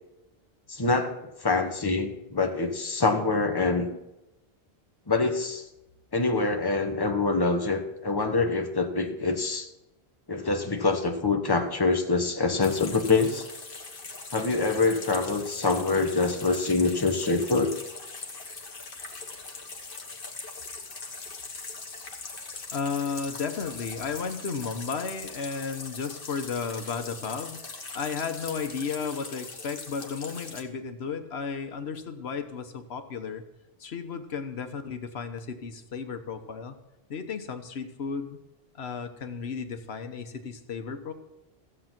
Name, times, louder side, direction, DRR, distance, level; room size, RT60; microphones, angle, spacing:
voice 1, 0.7-1.1 1.4-3.9 5.1-5.6 6.1-9.7 10.3-13.5 14.3-17.7, left 3 dB, 25° left, 5 dB, 1.1 m, -25 dB
sound 1, 12.6-30.6, left 3 dB, 60° left, 1.6 m, -41 dB
voice 2, 22.7-27.6 27.9-33.4 33.8-36.7 37.1-38.4 38.7-41.1, left 5 dB, 85° left, 7 dB, 1.3 m, -34 dB
14.5 x 7.7 x 5.9 m, 0.94 s
omnidirectional pair, 1.0 m